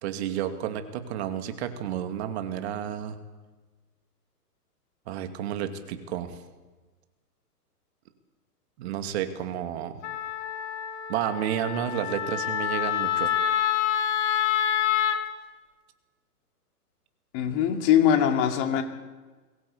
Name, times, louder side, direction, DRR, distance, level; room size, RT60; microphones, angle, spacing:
voice 1, 0.0-3.2 5.1-6.4 8.8-10.0 11.1-13.3, right 10 dB, 40° right, 8 dB, 2.5 m, -31 dB
Wind instrument woodwind instrument, 10.0-15.2, left 10 dB, 45° left, 2.1 m, -27 dB
voice 2, 17.3-18.8, left 9 dB, 30° left, 5 dB, 2.6 m, -22 dB
23.0 x 17.5 x 8.6 m, 1.3 s
hypercardioid pair, 130°, 48 cm